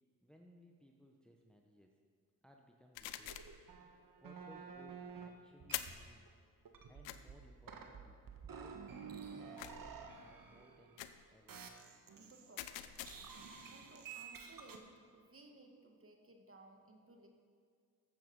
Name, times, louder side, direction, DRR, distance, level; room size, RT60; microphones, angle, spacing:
voice 1, 0.2-2.0 2.4-3.4 4.2-6.3 6.9-11.0 11.3-11.7, equal, ahead, 1 dB, 1.2 m, -63 dB
sound 1, 2.9-3.6 5.7-6.1 7.0-7.2 9.6-10.0 11.0-11.2 12.6-13.4, left 13 dB, 80° left, 0.7 m, -45 dB
sound 2, 3.2-5.3 5.6-6.3 6.7-11.1 11.5-12.6 13.0-14.8, right 6 dB, 50° right, 1.5 m, -51 dB
voice 2, 12.2-12.9 13.7-17.3, right 2 dB, 30° right, 3 dB, 2.0 m, -60 dB
14.5 x 7.8 x 5.6 m, 2.1 s
supercardioid pair, 55°, 44 cm